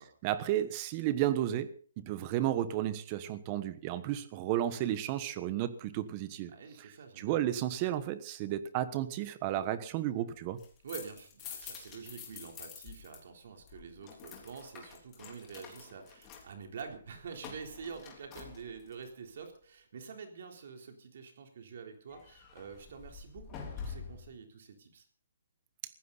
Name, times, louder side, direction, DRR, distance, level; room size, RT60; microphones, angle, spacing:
voice 1, 0.2-1.7 2.0-6.5 6.8-6.9 7.2-10.6, right 12 dB, 25° right, 13 dB, 1.3 m, -32 dB
voice 2, 6.5-7.4 10.8-25.1, right 6 dB, 55° right, 4 dB, 3.6 m, -47 dB
sound 1, 10.4-13.2 13.5-19.0 22.1-24.3, left 6 dB, 20° left, 3.7 m, -47 dB
20.0 x 15.5 x 4.2 m, 0.43 s
hypercardioid pair, 165°, 0 cm